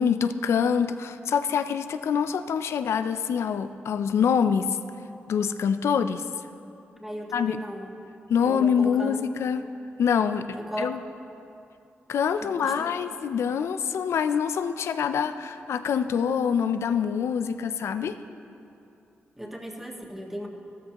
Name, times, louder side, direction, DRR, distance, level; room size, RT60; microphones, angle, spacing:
voice 1, 0.0-4.7 5.3-6.2 7.3-7.6 8.3-9.6 10.0-11.0 12.1-18.2, left 7 dB, 85° left, 11 dB, 0.4 m, -25 dB
voice 2, 7.0-7.9 8.4-9.3 10.6-11.0 12.4-13.0 19.4-20.5, equal, 5° right, 0 dB, 1.6 m, -36 dB
13.5 x 13.0 x 2.9 m, 2.7 s
cardioid pair, 60°, 4 cm